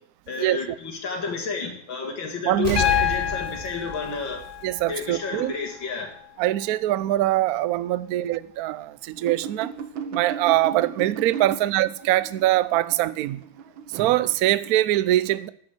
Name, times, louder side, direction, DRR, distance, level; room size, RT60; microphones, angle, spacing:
voice 1, 0.3-4.4 4.9-6.1, left 4 dB, 75° left, 2.9 m, -31 dB
voice 2, 2.4-2.8 4.6-5.5 6.4-9.7 10.1-13.4 13.9-15.5, right 15 dB, 70° right, 0.9 m, -23 dB
Explosion, 2.6-5.2 5.6-5.7, right 1 dB, 20° right, 2.8 m, -33 dB
Piano, 2.8-6.8 8.3-8.4, left 12 dB, 55° left, 0.8 m, -29 dB
sound 1, 9.2-14.7, right 7 dB, 90° right, 1.8 m, -36 dB
10.5 x 8.7 x 7.8 m
omnidirectional pair, 2.1 m